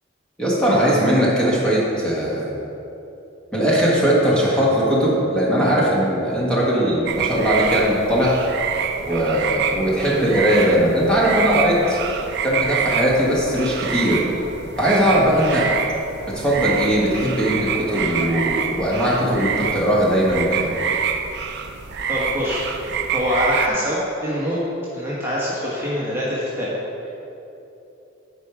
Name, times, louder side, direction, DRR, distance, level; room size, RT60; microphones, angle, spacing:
voice 1, 0.4-2.5 3.5-8.4 9.0-12.0 12.4-14.2 14.8-15.7 16.3-20.7, equal, 5° left, -6 dB, 1.5 m, -19 dB
sound 1, 7.1-23.7, right 7 dB, 60° right, 0.5 m, -26 dB
voice 2, 22.1-22.7 23.1-24.6 24.9-26.7 27.0-27.1, equal, 10° right, -8 dB, 1.3 m, -24 dB
10.5 x 4.8 x 5.0 m, 2.9 s
head